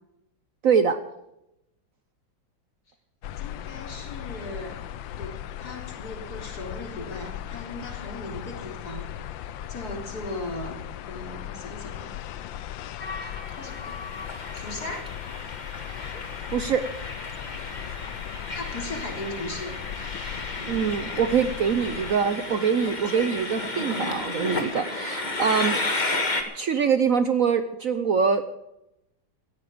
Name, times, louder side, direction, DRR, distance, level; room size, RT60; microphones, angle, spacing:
voice 1, 0.6-1.0 16.5-16.8 20.7-25.8 26.5-28.4, right 6 dB, 55° right, 11 dB, 1.1 m, -24 dB
sound 1, 3.2-22.1, left 11 dB, 90° left, 1.5 m, -38 dB
voice 2, 3.4-4.8 5.1-10.8 11.1-12.2 13.2-14.0 14.5-15.1 18.5-19.8, left 1 dB, 55° left, 2 dB, 4.2 m, -38 dB
Train, 13.0-26.4, left 2 dB, 25° left, 1.9 m, -33 dB
18.0 x 14.0 x 5.1 m, 0.86 s
omnidirectional pair, 2.0 m